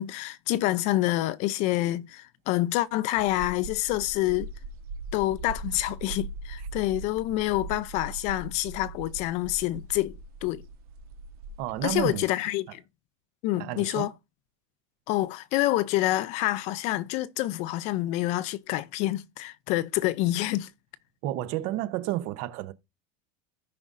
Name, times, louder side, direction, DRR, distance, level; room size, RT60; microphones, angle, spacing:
voice 1, 0.0-4.5 5.1-10.1 10.4-10.6 11.8-12.8 13.4-14.1 15.1-20.7, left 16 dB, 40° left, 0.4 m, -27 dB
sound 1, 3.2-12.2, right 3 dB, 85° right, 1.2 m, -40 dB
voice 2, 11.6-12.3 13.6-14.1 21.2-22.7, right 14 dB, 45° right, 0.7 m, -31 dB
15.0 x 5.3 x 2.5 m
supercardioid pair, 165°, 19 cm